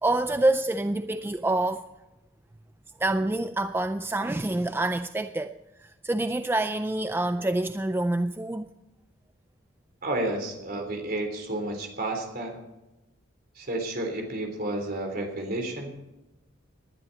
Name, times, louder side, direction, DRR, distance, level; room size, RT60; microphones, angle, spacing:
voice 1, 0.0-1.9 3.0-8.7, right 2 dB, 10° right, 0.4 m, -27 dB
voice 2, 10.0-12.6 13.6-15.9, right 1 dB, 50° right, 3.5 m, -31 dB
19.5 x 11.0 x 4.1 m
head